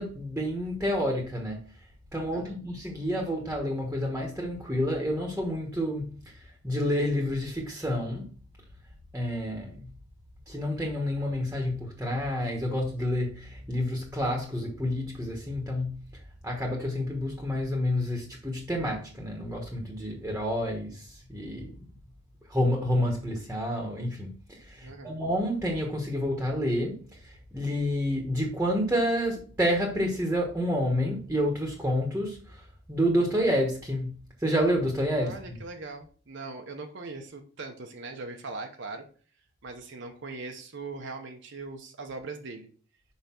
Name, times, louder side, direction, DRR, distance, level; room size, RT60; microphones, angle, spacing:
voice 1, 0.0-1.6 2.1-8.3 9.1-9.9 10.5-16.0 16.4-21.7 22.5-32.6 32.9-35.3, equal, 10° right, 1.2 m, -29 dB
voice 2, 24.8-25.2 35.2-39.0 39.6-42.7, right 3 dB, 65° right, 0.9 m, -40 dB
5.6 x 5.1 x 4.4 m
head